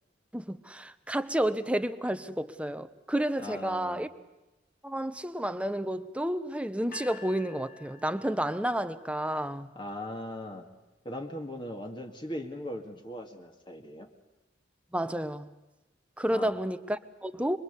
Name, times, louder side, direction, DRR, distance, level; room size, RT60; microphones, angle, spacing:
voice 1, 0.3-4.1 4.8-9.7 14.9-15.5 16.2-17.6, right 1 dB, 5° right, 1.0 m, -31 dB
voice 2, 3.4-4.1 9.8-10.7 11.0-14.1 16.3-16.5, left 1 dB, 30° left, 2.2 m, -39 dB
sound 1, 6.9-9.0, left 5 dB, 55° left, 2.2 m, -49 dB
26.5 x 23.0 x 8.3 m
head